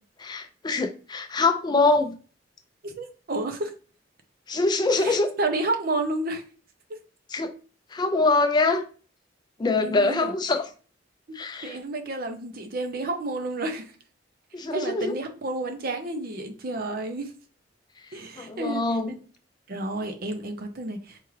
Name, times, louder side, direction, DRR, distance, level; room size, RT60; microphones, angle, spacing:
voice 1, 0.2-2.2 4.5-5.3 7.3-7.5 7.9-8.8 9.6-10.7 11.3-11.8 14.5-15.2 18.4-19.1, left 3 dB, 20° left, 6 dB, 0.3 m, -24 dB
voice 2, 2.8-3.7 5.0-6.4 6.9-7.0 9.6-10.3 11.3-11.4 11.6-13.9 14.7-17.3 18.1-19.2 19.7-21.2, right 2 dB, 50° right, 6 dB, 0.6 m, -31 dB
4.5 x 2.4 x 3.1 m, 0.38 s
head